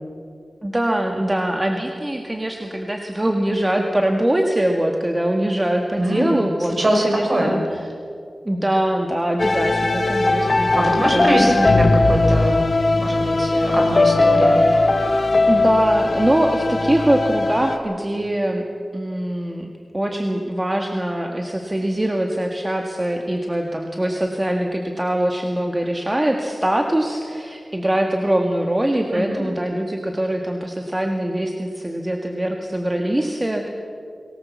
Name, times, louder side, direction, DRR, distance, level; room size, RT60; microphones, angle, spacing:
voice 1, 0.6-7.8 8.4-11.7 13.6-13.8 15.5-18.6 18.9-19.7 19.9-33.7, right 1 dB, 20° right, 2 dB, 1.8 m, -23 dB
voice 2, 6.0-6.4 6.8-7.6 10.7-12.6 12.9-15.1 29.1-29.4, right 1 dB, 45° right, 1 dB, 5.8 m, -22 dB
sound 1, 9.4-17.8, left 2 dB, 45° left, 1.8 m, -18 dB
24.0 x 18.5 x 7.4 m, 2.4 s
wide cardioid pair, 75°, 0 cm